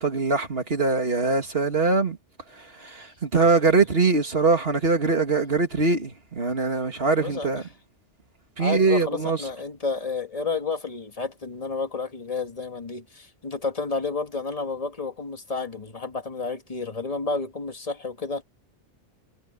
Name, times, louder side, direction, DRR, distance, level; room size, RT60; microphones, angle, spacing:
voice 1, 0.0-2.2 2.6-7.6 8.6-9.4, right 3 dB, 55° right, 2.5 m, -22 dB
voice 2, 7.2-7.7 8.6-18.4, left 4 dB, 30° left, 1.7 m, -31 dB
omnidirectional pair, 1.2 m